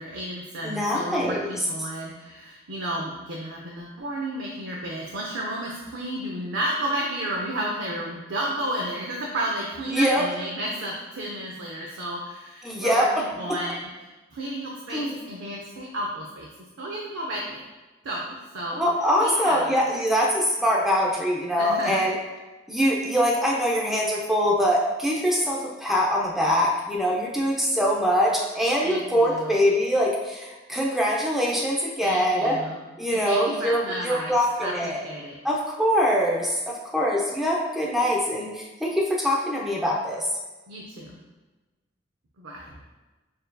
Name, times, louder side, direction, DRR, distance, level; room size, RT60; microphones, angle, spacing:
voice 1, 0.0-13.9 14.3-16.5 16.8-17.6 18.0-18.8 19.2-19.7 21.6-22.1 28.8-29.5 32.0-32.8 33.1-34.3 34.6-35.4 40.7-41.2 42.4-42.8, right 1 dB, 70° right, -2 dB, 0.6 m, -32 dB
voice 2, 0.6-1.5 9.9-10.2 12.6-13.1 13.5-13.6 14.9-15.1 18.7-22.2 22.7-32.6 33.0-35.0 35.4-40.2, equal, ahead, -3 dB, 0.5 m, -23 dB
6.4 x 2.7 x 2.2 m, 1.2 s
head